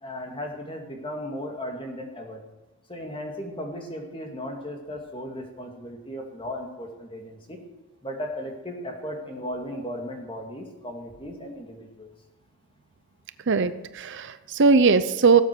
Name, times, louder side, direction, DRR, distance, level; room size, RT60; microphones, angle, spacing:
voice 1, 0.0-2.4 2.9-7.6 8.0-12.1, equal, 25° left, 2 dB, 2.3 m, -36 dB
voice 2, 13.5-15.4, right 4 dB, 55° right, 12 dB, 0.6 m, -20 dB
17.0 x 8.0 x 6.8 m, 1.1 s
head